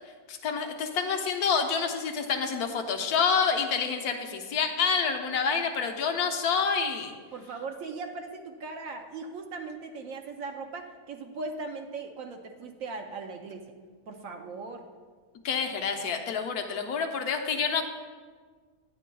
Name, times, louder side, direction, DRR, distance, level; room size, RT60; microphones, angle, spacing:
voice 1, 0.3-7.1 15.4-17.8, left 6 dB, 75° left, 5 dB, 1.1 m, -28 dB
voice 2, 7.3-13.6 14.1-14.8, right 4 dB, 65° right, 4 dB, 0.9 m, -39 dB
9.9 x 9.2 x 2.2 m, 1.6 s
omnidirectional pair, 1.7 m